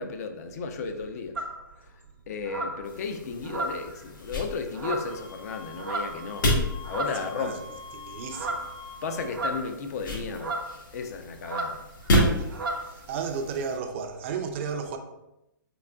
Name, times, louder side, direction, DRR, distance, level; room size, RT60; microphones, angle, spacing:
voice 1, 0.0-1.4 2.3-6.5 6.8-7.6 9.0-10.6 10.9-11.8, left 5 dB, 45° left, 0.4 m, -34 dB
sound 1, 1.4-1.6 2.5-2.8 3.4-4.0 4.7-5.2 5.8-6.2 6.8-7.3 8.3-8.7 9.3-9.9 10.4-10.7 11.4-11.8 12.0-12.2 12.5-12.9, right 2 dB, 90° right, 0.6 m, -33 dB
sound 2, 2.8-13.8, equal, 70° left, 1.2 m, -32 dB
Wind instrument woodwind instrument, 5.1-9.3, left 3 dB, 25° left, 0.7 m, -45 dB
voice 2, 7.1-7.6 7.9-8.7 12.4-12.5 12.8-15.0, right 5 dB, 35° right, 0.4 m, -34 dB
3.7 x 3.5 x 2.2 m
hypercardioid pair, 150°, 11 cm